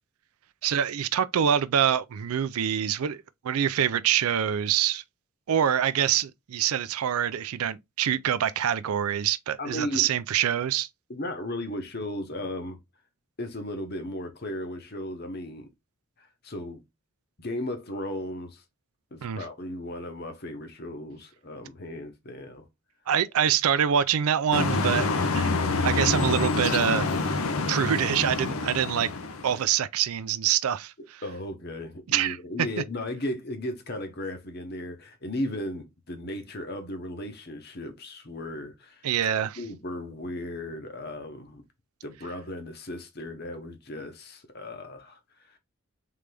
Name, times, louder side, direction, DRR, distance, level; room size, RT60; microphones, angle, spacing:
voice 1, 0.6-5.0 5.5-10.9 19.2-19.4 23.1-25.1 25.3-25.5 25.8-29.1 29.4-30.9 32.1-32.4 39.0-39.6, right 9 dB, 90° right, 0.4 m, -25 dB
voice 2, 9.6-10.1 11.1-12.8 13.4-15.7 16.2-16.8 17.4-18.6 19.1-22.6 31.2-39.3 39.6-41.6 42.0-45.6, left 1 dB, 45° left, 1.0 m, -36 dB
sound 1, 24.5-29.6, left 3 dB, 85° left, 0.7 m, -27 dB
3.9 x 3.4 x 3.3 m
head